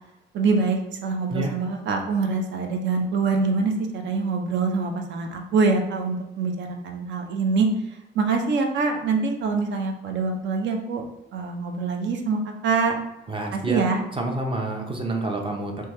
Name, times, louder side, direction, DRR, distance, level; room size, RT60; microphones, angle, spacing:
voice 1, 0.3-7.7 8.1-11.1 11.3-12.9 13.5-14.0, right 4 dB, 65° right, 3 dB, 0.6 m, -24 dB
voice 2, 13.3-13.8 14.1-15.9, right 2 dB, 25° right, 2 dB, 0.6 m, -28 dB
3.3 x 2.2 x 2.9 m, 0.94 s
cardioid pair, 90°, 20 cm